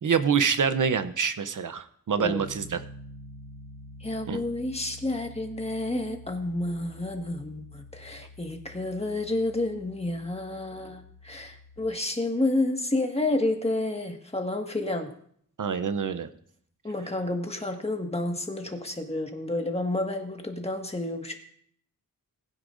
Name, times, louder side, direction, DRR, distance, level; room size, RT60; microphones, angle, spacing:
voice 1, 0.0-2.8 4.3-4.4 15.6-16.3, right 6 dB, 60° right, 11 dB, 0.7 m, -26 dB
Piano, 2.2-11.8, left 1 dB, 80° right, 4.5 m, -47 dB
voice 2, 4.0-15.1 16.8-21.4, left 2 dB, 15° left, 3 dB, 1.7 m, -30 dB
20.0 x 9.7 x 2.6 m, 0.64 s
wide cardioid pair, 80°, 35 cm